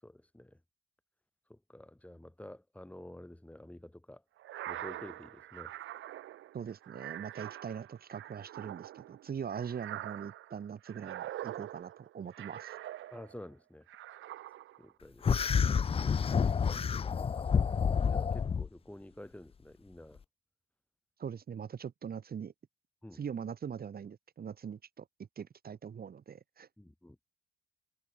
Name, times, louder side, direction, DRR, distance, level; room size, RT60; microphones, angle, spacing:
voice 1, 0.0-0.6 1.5-4.2 4.7-5.8 13.1-13.9 14.8-15.5 16.7-16.9 17.2-20.2 23.0-23.2 26.8-27.2, left 1 dB, 5° left, 6.3 m, -50 dB
sound 1, 4.4-13.5 13.9-14.9, right 13 dB, 80° right, 1.9 m, -44 dB
voice 2, 6.5-12.8 21.2-22.5 23.1-25.1 25.4-26.7, right 7 dB, 50° right, 4.2 m, -42 dB
sound 2, 15.2-18.7, left 6 dB, 30° left, 0.5 m, -29 dB
cardioid pair, 90°, 20 cm